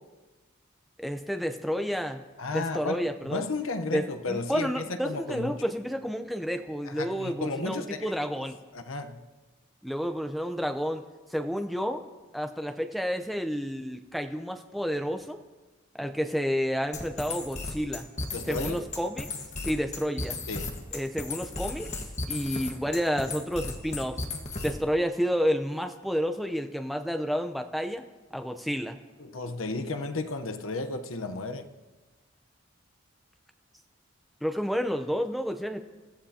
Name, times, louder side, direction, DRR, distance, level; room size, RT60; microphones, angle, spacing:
voice 1, 1.0-2.2 2.5-3.4 3.9-8.5 9.8-11.0 11.3-12.0 12.3-15.4 15.9-18.1 18.5-19.3 19.6-20.4 20.9-21.9 22.3-24.2 24.6-28.0 28.3-29.0 34.4-35.8, equal, ahead, 0.7 m, -30 dB
voice 2, 2.4-5.6 6.8-8.4 8.7-9.2 18.3-18.8 20.5-20.8 29.2-31.7, left 3 dB, 85° left, 1.0 m, -34 dB
sound 1, 16.9-24.9, left 3 dB, 35° left, 1.5 m, -35 dB
28.5 x 14.5 x 2.9 m
head